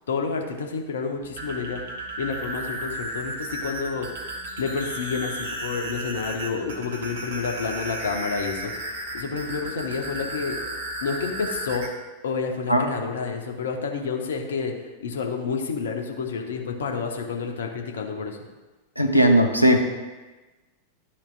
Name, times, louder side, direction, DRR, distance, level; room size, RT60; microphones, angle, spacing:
voice 1, 0.1-1.8 2.2-4.1 4.6-8.7 9.1-10.6 11.0-11.9 12.2-18.4, left 5 dB, 65° left, 2 dB, 0.8 m, -29 dB
sound 1, 1.2-11.9, right 1 dB, 65° right, 1.1 m, -34 dB
voice 2, 19.0-19.8, right 1 dB, 90° right, 3 dB, 0.8 m, -17 dB
12.0 x 4.3 x 2.5 m, 1.2 s
figure-of-eight pair, 90°, 0 cm